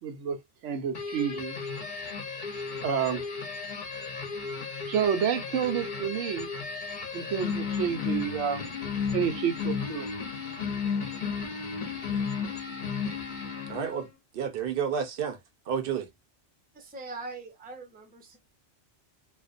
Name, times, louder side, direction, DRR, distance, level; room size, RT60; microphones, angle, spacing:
voice 1, 0.0-0.4 0.6-1.6 2.8-3.2 4.9-6.5 7.1-8.6 9.1-10.1, right 8 dB, 90° right, 1.0 m, -29 dB
sound 1, 0.9-14.1, left 5 dB, 50° left, 0.7 m, -34 dB
voice 2, 13.7-15.4 15.7-16.1, right 7 dB, 60° right, 0.7 m, -31 dB
voice 3, 16.7-18.4, right 3 dB, 10° right, 0.5 m, -42 dB
2.4 x 2.1 x 2.4 m
omnidirectional pair, 1.2 m